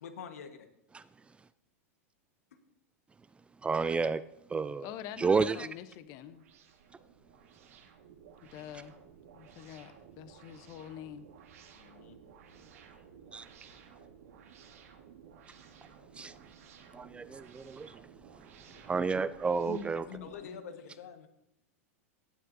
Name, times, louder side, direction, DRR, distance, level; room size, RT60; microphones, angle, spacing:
voice 1, 0.0-0.7 2.5-2.6 11.7-12.2 12.6-12.7 18.7-18.8 20.2-21.3, left 7 dB, 75° left, 1.3 m, -47 dB
voice 2, 3.6-4.2 4.5-4.9 5.2-5.7 13.3-13.5 16.2-16.3 16.9-18.0 18.9-20.1, right 4 dB, 15° right, 0.3 m, -30 dB
voice 3, 4.8-6.5 8.4-8.9 9.3-11.3 19.7-20.6, left 9 dB, 50° left, 0.8 m, -45 dB
sound 1, 5.7-20.4, right 7 dB, 75° right, 1.7 m, -56 dB
17.5 x 7.7 x 2.7 m
hypercardioid pair, 110°, 8 cm